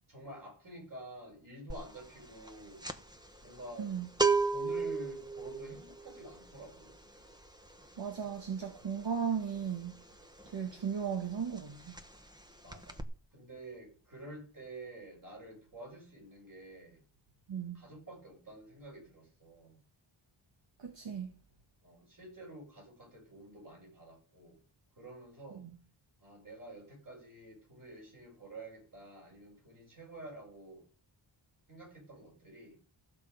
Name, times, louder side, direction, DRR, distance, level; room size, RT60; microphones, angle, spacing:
voice 1, 0.1-2.9 3.4-3.9 4.5-6.9 12.6-13.0 13.3-17.0 17.7-19.8 21.8-24.6 25.0-25.6 26.2-30.9 31.7-32.8, right 1 dB, 40° right, 6.8 m, -49 dB
sound 1, 1.7-2.0 2.2-10.8 11.1-11.3 11.6-12.4 12.7-13.0, right 4 dB, 10° right, 1.0 m, -34 dB
voice 2, 8.0-9.9 10.5-11.9 17.5-17.8 20.8-21.4 25.5-25.7, right 7 dB, 65° right, 1.8 m, -36 dB
15.0 x 6.7 x 5.1 m
wide cardioid pair, 105°, 47 cm